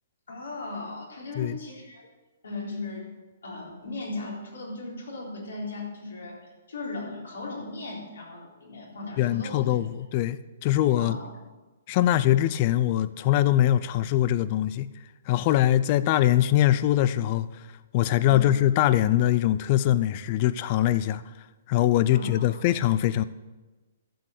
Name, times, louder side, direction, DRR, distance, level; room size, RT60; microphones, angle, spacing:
voice 1, 0.3-2.1 2.4-3.1 3.4-9.9 11.0-11.3 18.3-18.6 22.1-22.6, left 2 dB, 80° left, 4.0 m, -37 dB
voice 2, 9.2-11.2 11.9-14.9 15.3-17.5 17.9-21.2 21.7-23.2, left 13 dB, 40° left, 0.5 m, -22 dB
11.5 x 7.6 x 6.6 m
hypercardioid pair, 130°, 0 cm